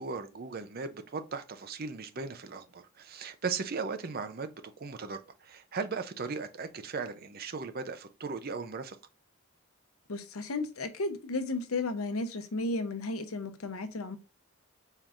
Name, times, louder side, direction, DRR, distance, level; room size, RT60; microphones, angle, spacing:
voice 1, 0.0-4.5 4.8-9.0, right 4 dB, 45° right, 0.6 m, -37 dB
voice 2, 10.1-14.2, left 2 dB, 85° left, 0.7 m, -34 dB
4.5 x 3.6 x 2.5 m
head